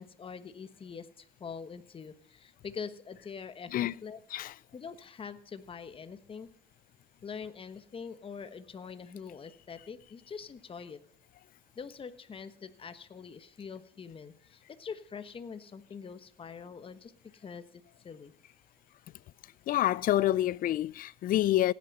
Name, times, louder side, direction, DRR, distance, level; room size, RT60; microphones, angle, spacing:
voice 1, 0.0-4.2 4.7-6.5 7.2-11.0 11.7-18.3, left 6 dB, 30° left, 1.2 m, -44 dB
voice 2, 19.7-21.7, left 13 dB, 55° left, 0.5 m, -27 dB
16.5 x 9.6 x 5.4 m
cardioid pair, 110°, 17 cm